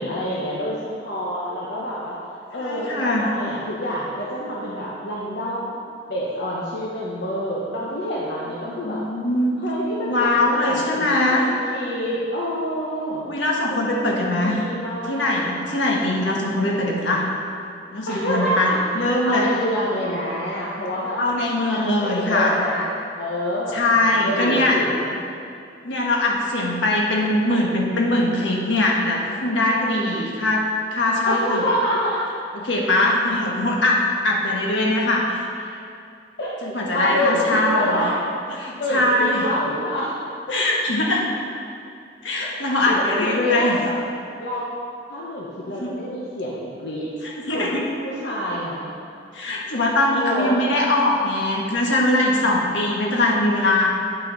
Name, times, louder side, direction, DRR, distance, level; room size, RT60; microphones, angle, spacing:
voice 1, 0.0-2.2 2.5-5.8 6.1-9.0 9.6-13.3 13.7-15.5 18.1-18.9 19.2-21.2 21.7-22.9 23.2-23.8 24.2-25.2 31.3-32.2 36.4-38.1 38.8-40.1 40.5-40.6 42.4-44.0 44.4-44.7 45.1-47.1 47.5-47.7 48.0-48.9 50.1-50.6, equal, 60° left, -5 dB, 0.9 m, -27 dB
voice 2, 2.6-3.3 8.6-9.5 10.0-11.5 13.3-14.6 15.1-17.3 17.9-19.5 21.2-22.6 23.7-24.8 25.8-31.6 32.5-35.5 36.6-38.0 38.6-39.5 40.5-41.3 42.2-43.8 45.7-46.0 47.2-47.8 49.3-53.9, left 1 dB, 80° left, -2 dB, 1.4 m, -21 dB
9.2 x 5.8 x 4.0 m, 2.5 s
head